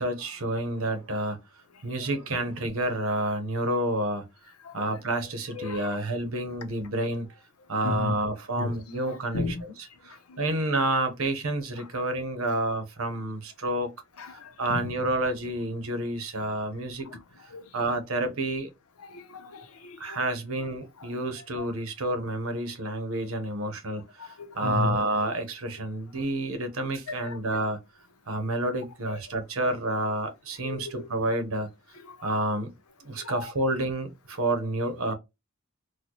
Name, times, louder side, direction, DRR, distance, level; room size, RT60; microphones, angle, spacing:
voice 1, 0.0-1.4 1.8-4.2 4.7-7.4 7.7-9.4 10.0-13.9 14.3-17.1 17.7-18.7 20.0-27.8 28.3-31.7 32.2-32.7 33.0-35.1, right 1 dB, 70° right, 0.9 m, -29 dB
voice 2, 4.6-5.0 5.5-6.0 7.8-8.1 8.6-8.8 9.0-9.6 10.1-10.5 11.8-11.9 14.2-14.9 17.0-17.2 17.5-17.7 19.0-20.2 21.0-21.7 24.2-25.1 27.1-27.6 28.3-28.4 30.6-31.1 32.0-32.3 33.1-33.5 35.1-35.2, left 3 dB, 85° left, 0.7 m, -35 dB
4.1 x 2.2 x 2.9 m
head